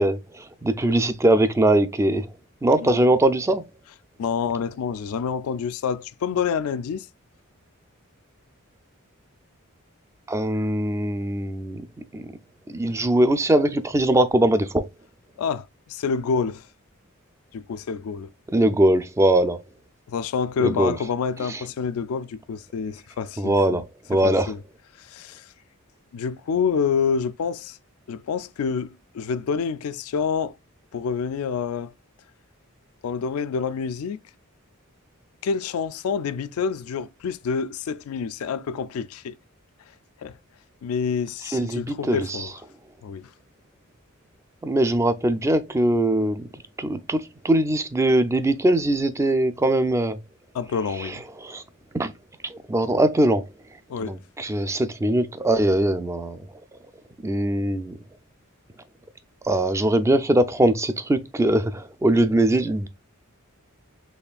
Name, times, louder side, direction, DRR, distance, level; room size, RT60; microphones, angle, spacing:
voice 1, 0.0-2.3 2.6-3.7 10.3-11.8 12.1-12.3 12.7-14.9 18.5-19.6 20.6-21.0 21.4-21.6 23.4-24.5 41.5-42.5 44.6-50.2 51.0-51.6 51.9-52.1 52.4-53.5 54.0-56.5 57.2-58.0 59.4-62.9, right 1 dB, 15° right, 0.3 m, -21 dB
voice 2, 4.2-7.1 15.4-16.6 17.5-18.3 20.1-23.8 24.1-24.6 25.0-25.5 26.1-27.8 28.1-30.6 30.9-31.9 33.0-34.2 35.4-39.4 40.2-40.4 40.8-42.5 43.0-43.3 50.5-51.2 53.9-54.2, left 6 dB, 70° left, 0.3 m, -27 dB
4.2 x 3.1 x 2.3 m
head